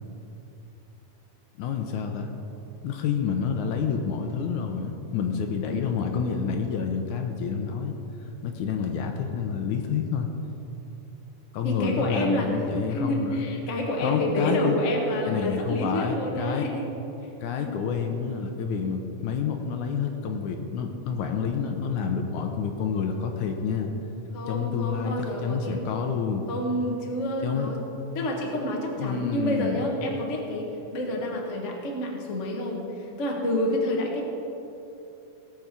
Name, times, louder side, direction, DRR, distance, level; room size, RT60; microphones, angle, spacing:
voice 1, 1.6-2.3 2.8-8.0 8.4-10.3 11.5-13.4 14.0-14.8 15.3-16.7 17.4-23.9 24.5-26.5 27.4-27.7 29.0-29.8 30.2-30.3, left 6 dB, 75° left, 4 dB, 2.1 m, -28 dB
voice 2, 11.6-12.6 12.9-16.9 17.6-17.7 24.3-25.8 26.5-27.8 28.1-34.3, left 1 dB, 40° left, 0 dB, 1.0 m, -28 dB
17.0 x 7.0 x 6.0 m, 3.0 s
omnidirectional pair, 3.8 m